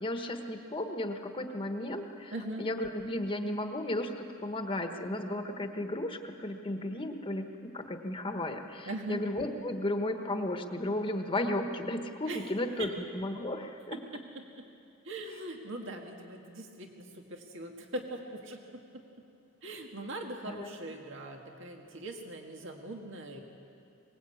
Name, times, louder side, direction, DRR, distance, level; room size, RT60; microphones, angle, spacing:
voice 1, 0.0-2.3 2.6-14.0 20.4-20.7, left 1 dB, 25° left, 5 dB, 1.3 m, -34 dB
voice 2, 2.3-2.7 8.9-9.2 12.3-12.5 12.8-12.9 14.1-14.2 14.6-14.7 15.0-19.0 19.6-23.4, right 1 dB, 65° right, 2 dB, 2.0 m, -41 dB
23.0 x 20.5 x 8.6 m, 2.6 s
head